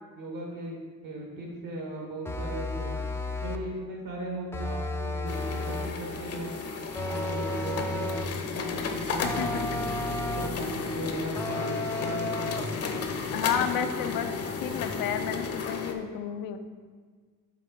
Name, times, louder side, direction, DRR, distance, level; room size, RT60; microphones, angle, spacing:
voice 1, 0.2-0.8 1.0-3.0 3.4-6.7 7.0-8.2 8.5-10.0 10.3-12.8, right 1 dB, 70° right, -1 dB, 1.7 m, -38 dB
sound 1, 2.3-3.7 4.5-6.0 7.0-8.4 9.2-10.7 11.4-12.8, left 1 dB, 10° left, 0.3 m, -33 dB
sound 2, 5.3-15.9, left 5 dB, 45° left, 0.7 m, -33 dB
voice 2, 9.2-9.9 13.3-14.3 14.6-16.6, left 8 dB, 80° left, 8 dB, 0.5 m, -31 dB
5.7 x 3.7 x 5.3 m, 1.5 s
cardioid pair, 105°, 33 cm